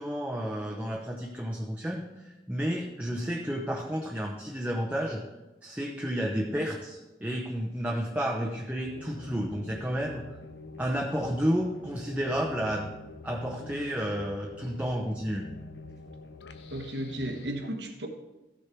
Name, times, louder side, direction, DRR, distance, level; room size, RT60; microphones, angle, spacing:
voice 1, 0.0-5.2 5.6-10.2 10.8-12.9 13.2-15.5, equal, 10° right, -1 dB, 0.8 m, -31 dB
sound 1, 8.8-17.5, left 3 dB, 80° left, 0.9 m, -46 dB
voice 2, 16.7-18.1, right 1 dB, 75° right, 4 dB, 1.4 m, -34 dB
14.5 x 6.6 x 4.6 m, 1.1 s
head